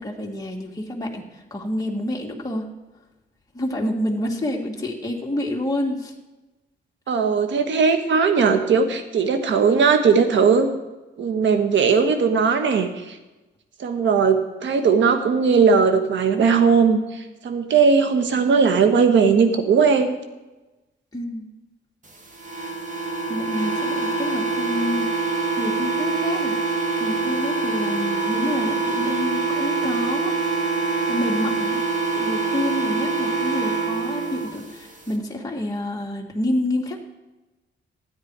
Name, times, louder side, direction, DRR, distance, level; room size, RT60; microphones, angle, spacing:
voice 1, 0.0-2.7 3.5-6.1 21.1-21.5 23.3-26.6 27.0-30.3 31.1-31.8 32.1-37.0, left 1 dB, 20° left, -1 dB, 2.1 m, -28 dB
voice 2, 7.1-10.7 11.2-13.2 13.8-20.2, right 5 dB, 75° right, 7 dB, 1.4 m, -18 dB
sound 1, 22.4-34.5, right 4 dB, 40° right, 2.1 m, -25 dB
13.0 x 9.5 x 4.8 m, 1.1 s
cardioid pair, 80°, 19 cm